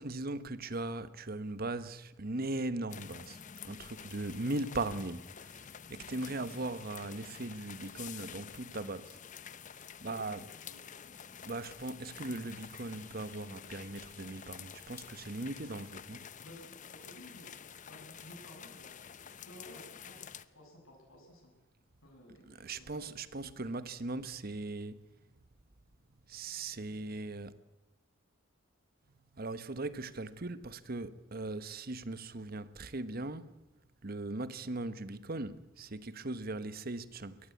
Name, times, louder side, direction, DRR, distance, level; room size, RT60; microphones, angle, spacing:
voice 1, 0.0-3.4 3.6-5.2 5.9-9.2 10.0-10.4 11.4-16.3 22.5-25.0 26.3-27.5 29.3-33.5 34.0-37.4, right 2 dB, 45° right, 1.1 m, -39 dB
sound 1, 2.9-20.5, left 8 dB, 40° left, 0.7 m, -49 dB
voice 2, 4.6-4.9 10.0-11.2 16.4-17.6 17.9-19.0 19.2-21.5 22.0-23.1, equal, 90° left, 7.3 m, -55 dB
22.5 x 18.5 x 8.4 m
head